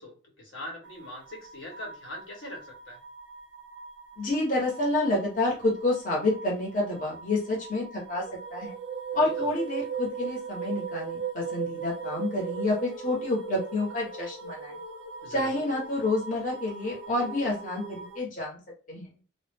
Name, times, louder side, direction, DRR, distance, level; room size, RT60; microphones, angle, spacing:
voice 1, 0.0-3.0 9.1-9.5 15.2-15.6, left 1 dB, 80° left, -1 dB, 1.0 m, -41 dB
sound 1, 0.8-18.2, right 6 dB, 65° right, 0.4 m, -39 dB
voice 2, 4.2-8.2 8.5-8.8 9.1-14.7 15.3-18.6 18.9-19.1, left 2 dB, 40° left, -4 dB, 0.8 m, -28 dB
2.3 x 2.0 x 3.3 m, 0.37 s
head